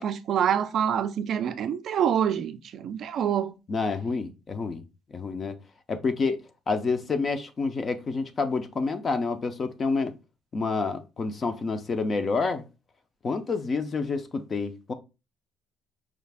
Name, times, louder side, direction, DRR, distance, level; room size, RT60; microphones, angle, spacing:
voice 1, 0.0-3.5, right 9 dB, 45° right, 0.3 m, -26 dB
voice 2, 3.7-4.8 5.1-5.5 5.9-6.4 6.7-10.1 10.5-12.7 13.2-14.9, left 4 dB, 25° left, 0.4 m, -28 dB
4.9 x 2.4 x 3.3 m
cardioid pair, 175°, 0 cm